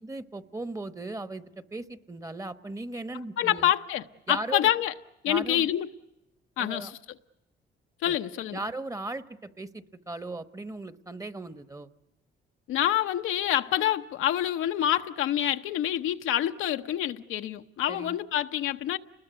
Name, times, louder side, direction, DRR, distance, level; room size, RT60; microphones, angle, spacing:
voice 1, 0.0-3.7 4.3-4.7 5.3-5.7 6.6-6.9 8.1-8.2 8.5-11.9 17.9-18.2, right 2 dB, 15° right, 1.0 m, -37 dB
voice 2, 3.4-4.9 5.2-5.9 6.6-7.0 8.0-8.6 12.7-19.0, left 11 dB, 85° left, 0.9 m, -27 dB
28.5 x 20.5 x 8.0 m
cardioid pair, 90°, 20 cm